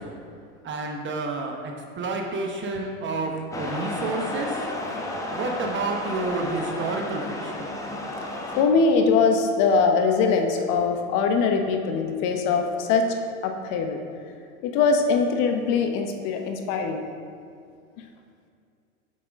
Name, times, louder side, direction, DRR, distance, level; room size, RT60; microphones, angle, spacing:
voice 1, 0.6-1.5 2.0-3.3 3.6-4.5 5.3-7.2, right 3 dB, 25° right, 2 dB, 0.9 m, -29 dB
sound 1, 3.5-8.6, left 2 dB, 5° left, 0.8 m, -32 dB
voice 2, 8.6-13.1 13.4-14.0 14.6-17.0, left 5 dB, 45° left, 4 dB, 0.9 m, -22 dB
8.5 x 6.0 x 3.5 m, 2.3 s
hypercardioid pair, 105°, 44 cm